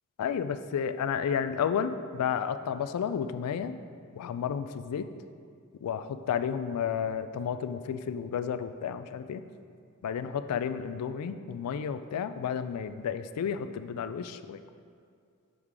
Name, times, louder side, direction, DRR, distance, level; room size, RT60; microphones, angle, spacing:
voice 1, 0.2-3.7 4.1-5.1 5.8-9.4 10.0-14.6, left 7 dB, 85° left, 13 dB, 0.3 m, -32 dB
6.3 x 4.7 x 3.7 m, 2.3 s
head